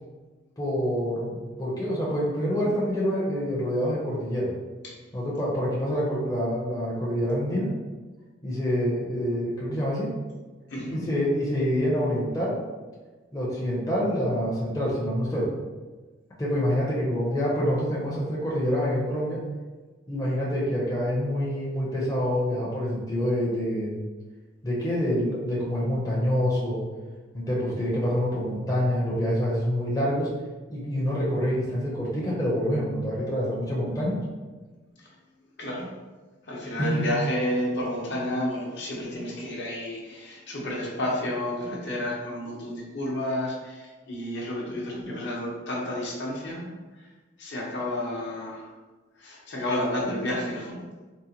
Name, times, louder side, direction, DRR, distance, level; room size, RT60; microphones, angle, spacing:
voice 1, 0.6-4.5 5.1-7.7 8.4-10.1 10.9-12.6 13.3-15.5 16.4-19.4 20.1-23.9 24.6-26.8 27.3-30.3 30.7-34.1 36.8-37.1, equal, 20° left, -6 dB, 0.5 m, -26 dB
voice 2, 10.7-11.0 35.6-35.9 36.4-46.7 46.9-47.1 47.4-48.7 49.2-50.8, left 1 dB, 60° left, -4 dB, 0.8 m, -31 dB
3.8 x 2.1 x 2.8 m, 1.3 s
head